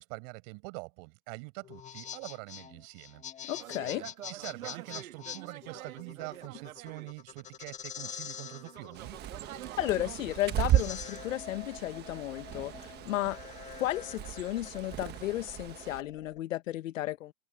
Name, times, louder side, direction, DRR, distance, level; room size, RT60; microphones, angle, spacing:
voice 1, 0.0-3.5 3.8-9.2, right 36 dB, 45° right, 6.3 m, -45 dB
sound 1, 1.6-16.4, left 8 dB, 15° left, 1.8 m, -46 dB
voice 2, 3.5-4.1 9.8-13.4 13.8-17.3, left 15 dB, 65° left, 1.6 m, -33 dB
sound 2, 3.6-7.5 8.0-10.3, right 12 dB, 80° right, 1.8 m, -46 dB
Bird, 8.9-16.0, right 13 dB, 25° right, 1.3 m, -35 dB
open air
hypercardioid pair, 145°, 41 cm